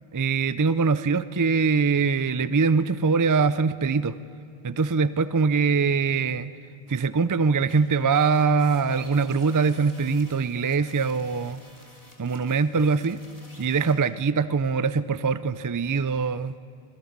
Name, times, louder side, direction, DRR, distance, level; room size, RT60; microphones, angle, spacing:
voice 1, 0.1-4.1 4.6-6.5 6.9-11.6 12.2-13.2 13.6-16.5, right 5 dB, 30° right, 14 dB, 0.4 m, -23 dB
sound 1, 7.7-13.9, left 1 dB, 35° left, 3.5 m, -51 dB
25.0 x 22.0 x 5.3 m, 2.7 s
omnidirectional pair, 1.0 m